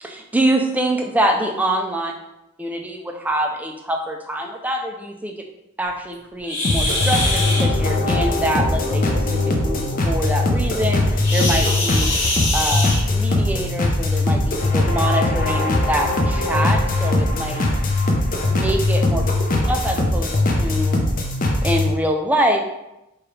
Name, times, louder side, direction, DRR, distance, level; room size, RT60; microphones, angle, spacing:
voice 1, 0.0-2.1 2.6-5.3 5.8-12.1 12.5-17.6 18.5-19.2 19.7-21.0 21.6-22.6, right 1 dB, 10° right, 2 dB, 0.3 m, -24 dB
sound 1, 6.4-7.7 11.2-13.4 14.7-14.8 15.4-15.5 16.1-16.2 17.0-17.1 17.5-17.7, left 2 dB, 70° left, 1.4 m, -24 dB
sound 2, 6.6-21.9, left 2 dB, 40° left, 0.5 m, -20 dB
4.8 x 2.4 x 3.1 m, 0.90 s
head